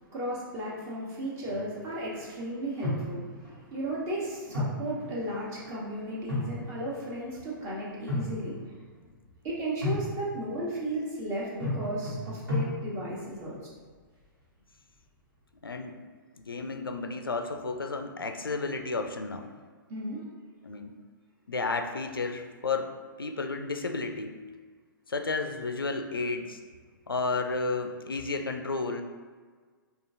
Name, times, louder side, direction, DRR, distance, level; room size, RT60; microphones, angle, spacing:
voice 1, 0.1-8.8 9.4-13.6 19.9-20.2, right 1 dB, 25° right, -5 dB, 1.0 m, -35 dB
sound 1, 1.4-1.9 2.8-3.5 4.5-5.7 6.1-7.2 7.9-8.8 9.8-10.5 11.6-13.2, left 1 dB, 85° right, 1.3 m, -34 dB
voice 2, 15.6-16.0 16.5-19.5 20.6-20.9 21.5-24.4 25.1-26.6 27.1-29.0, left 3 dB, 85° left, 6 dB, 0.4 m, -32 dB
4.9 x 2.4 x 2.6 m, 1.5 s
figure-of-eight pair, 115°, 12 cm